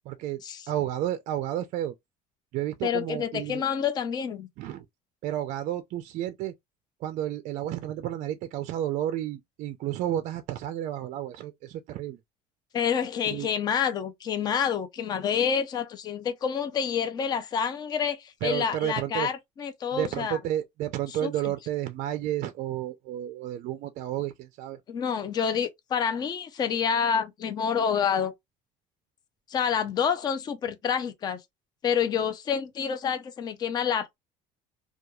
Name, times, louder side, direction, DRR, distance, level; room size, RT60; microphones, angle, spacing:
voice 1, 0.1-2.0 2.5-3.6 4.6-4.9 5.2-6.5 7.0-12.2 13.3-13.5 18.4-19.3 19.9-24.8, right 12 dB, 55° right, 0.4 m, -31 dB
voice 2, 2.8-4.5 12.7-20.4 21.2-21.3 24.9-28.3 29.5-31.4 31.8-34.2, left 7 dB, 25° left, 0.4 m, -28 dB
2.9 x 2.3 x 2.2 m
cardioid pair, 160°, 15 cm